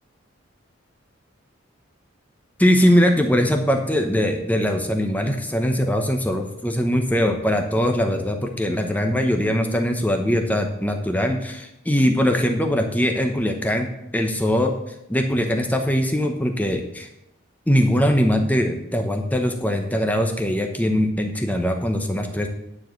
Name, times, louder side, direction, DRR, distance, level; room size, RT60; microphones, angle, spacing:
voice 1, 2.6-14.7 15.1-17.1 17.7-22.5, equal, 10° left, 4 dB, 0.8 m, -21 dB
9.7 x 4.8 x 7.7 m, 0.83 s
head